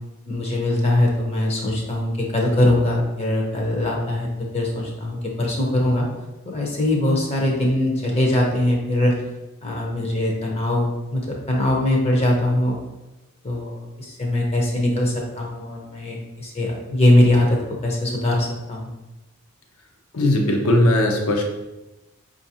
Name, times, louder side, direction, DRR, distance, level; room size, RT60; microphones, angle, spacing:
voice 1, 0.3-4.3 4.5-6.1 6.5-9.2 9.6-12.8 13.4-18.9, left 1 dB, 30° left, 0 dB, 0.5 m, -21 dB
voice 2, 20.1-21.4, left 1 dB, 70° left, 2 dB, 0.6 m, -18 dB
4.7 x 2.4 x 2.7 m, 1.0 s
head